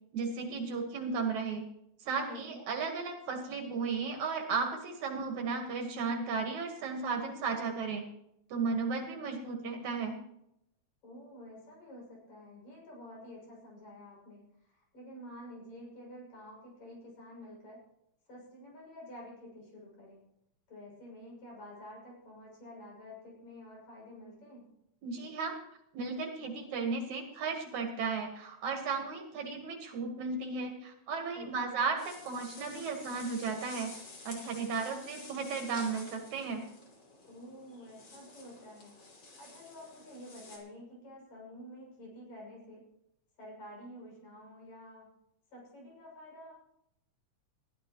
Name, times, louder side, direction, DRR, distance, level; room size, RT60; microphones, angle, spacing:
voice 1, 0.1-1.7 2.0-8.1 8.5-10.2 25.0-25.6 25.9-34.0 34.2-36.6, right 4 dB, 80° right, 3 dB, 2.9 m, -35 dB
voice 2, 2.3-2.7 11.0-17.8 18.3-20.2 20.7-24.7 31.4-31.7 37.3-42.9 43.4-45.1 45.5-46.5, left 1 dB, 70° left, -3 dB, 8.2 m, -50 dB
sound 1, 32.0-40.6, left 3 dB, 50° left, 4.0 m, -51 dB
21.0 x 13.0 x 3.1 m, 0.77 s
omnidirectional pair, 3.3 m